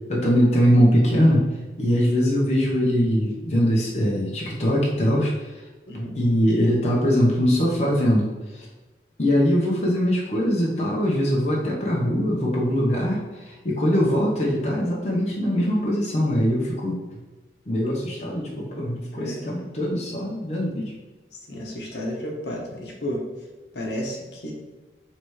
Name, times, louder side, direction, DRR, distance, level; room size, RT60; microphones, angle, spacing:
voice 1, 0.1-1.4 1.8-5.5 5.9-8.7 9.2-17.0 17.7-20.9, equal, 35° left, -4 dB, 0.7 m, -22 dB
voice 2, 5.9-6.2 19.1-19.5 21.5-23.2 23.7-24.5, equal, 70° left, -1 dB, 0.9 m, -32 dB
3.2 x 2.9 x 4.6 m, 1.2 s
head